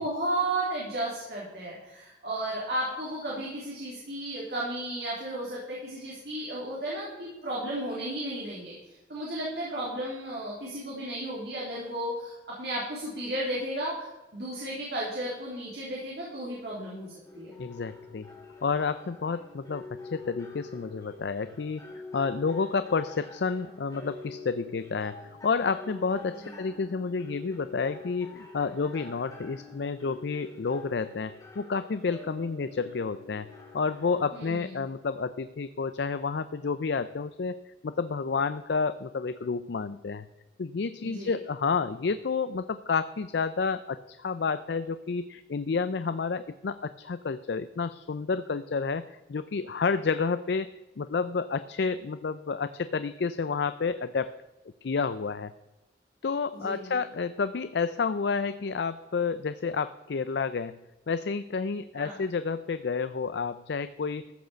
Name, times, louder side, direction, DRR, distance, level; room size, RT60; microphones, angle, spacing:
voice 1, 0.0-8.8 9.1-14.1 14.3-17.6 26.4-26.6 34.3-34.8 41.0-41.3 56.5-57.0 61.9-62.2, right 1 dB, 60° right, -5 dB, 3.3 m, -34 dB
sound 1, 17.2-34.2, left 3 dB, 20° left, 2.4 m, -46 dB
voice 2, 17.6-18.3 18.6-21.8 22.1-25.2 25.4-33.5 33.7-37.6 37.8-40.3 40.6-50.7 51.0-54.3 54.8-55.5 56.2-60.8 61.1-64.2, left 5 dB, 65° left, 12 dB, 0.4 m, -30 dB
14.0 x 6.5 x 6.9 m, 1.0 s
head